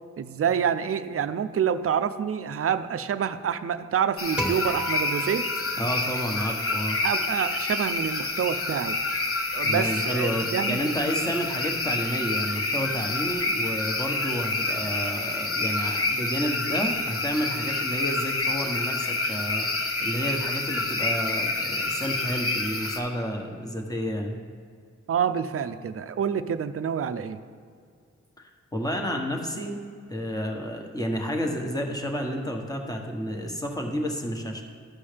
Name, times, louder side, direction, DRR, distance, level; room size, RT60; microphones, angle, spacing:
voice 1, 0.2-5.6 7.0-9.0 9.5-10.9 25.1-27.4, right 8 dB, 50° right, 11 dB, 0.5 m, -27 dB
sound 1, 4.2-23.0, left 2 dB, 45° left, 1.0 m, -28 dB
sound 2, 4.4-6.8, right 1 dB, 5° right, 1.6 m, -35 dB
voice 2, 5.8-7.0 9.6-19.7 20.0-24.4 28.4-29.8 30.1-34.6, equal, 10° left, 1 dB, 1.3 m, -30 dB
13.0 x 5.4 x 3.4 m, 2.2 s
cardioid pair, 55°, 30 cm